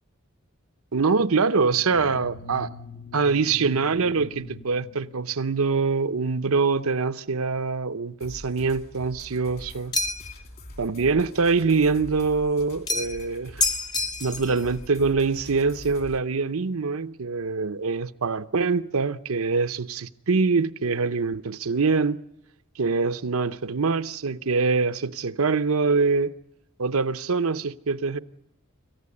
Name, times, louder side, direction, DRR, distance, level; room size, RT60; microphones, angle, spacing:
voice 1, 0.9-2.7 3.1-9.9 10.8-13.6 14.2-22.2 22.8-26.3 26.8-28.2, right 4 dB, 85° right, 0.8 m, -24 dB
sound 1, 1.7-5.8, left 1 dB, 80° left, 1.6 m, -43 dB
sound 2, 8.2-16.2, left 1 dB, 45° left, 2.4 m, -44 dB
sound 3, 9.9-10.4 12.9-13.3 13.6-14.6, left 2 dB, 20° left, 1.0 m, -27 dB
26.5 x 15.0 x 9.7 m
head